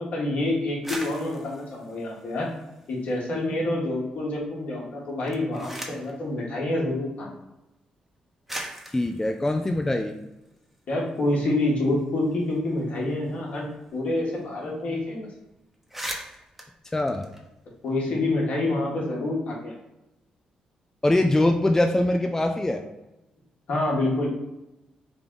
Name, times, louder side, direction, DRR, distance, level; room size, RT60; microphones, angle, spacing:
voice 1, 0.0-2.5 2.9-7.3 10.9-15.3 17.8-19.7 23.7-24.3, left 2 dB, 60° left, -3 dB, 1.4 m, -27 dB
sound 1, 0.7-3.3 3.6-4.3 5.1-6.2 7.2-7.3 8.1-8.2 8.5-10.8 11.2-11.3 11.5-14.1 14.4-14.5 14.8-15.0 15.4-15.5 15.7-18.0, equal, 5° right, 0.9 m, -41 dB
voice 2, 8.9-10.2 16.9-17.2 21.0-22.8, left 1 dB, 15° left, 4 dB, 0.3 m, -23 dB
3.4 x 2.3 x 3.8 m, 0.94 s
supercardioid pair, 55°, 3 cm